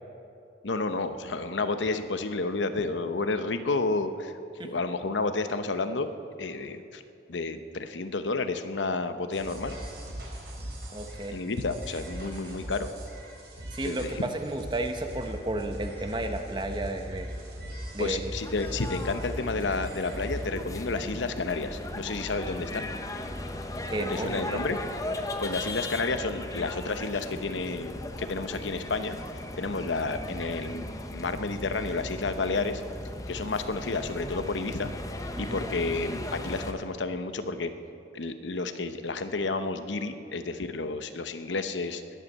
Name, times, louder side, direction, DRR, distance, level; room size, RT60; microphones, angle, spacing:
voice 1, 0.6-4.3 4.6-6.1 6.4-7.0 7.3-9.8 11.3-12.9 13.8-14.3 18.0-22.9 24.0-24.8 25.2-29.2 29.6-30.8 31.1-32.8 33.3-34.9 35.4-37.7 38.1-42.0, left 3 dB, 85° left, 9 dB, 0.8 m, -31 dB
sound 1, 9.3-20.4, equal, 65° right, 4.2 m, -40 dB
voice 2, 10.9-11.4 13.7-17.3 17.9-18.3 23.9-24.6 35.4-35.7, right 2 dB, 25° right, 6 dB, 1.0 m, -33 dB
sound 2, 18.3-36.7, left 1 dB, 20° left, 0.8 m, -37 dB
20.5 x 8.2 x 7.4 m, 2.6 s
head